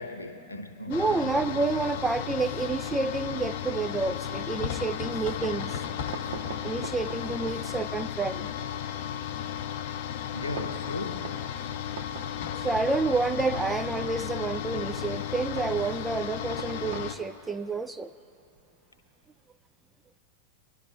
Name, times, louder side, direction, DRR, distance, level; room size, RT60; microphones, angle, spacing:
voice 1, 0.0-0.9 10.3-11.4, left 2 dB, 80° left, 0.9 m, -37 dB
sound 1, 0.9-17.2, left 9 dB, 50° left, 0.5 m, -34 dB
voice 2, 0.9-5.7 6.6-8.5 12.5-18.1, right 3 dB, 10° right, 0.3 m, -29 dB
Fireworks, 5.2-19.3, right 5 dB, 60° right, 0.9 m, -46 dB
25.5 x 11.5 x 2.5 m
figure-of-eight pair, 90°, 0 cm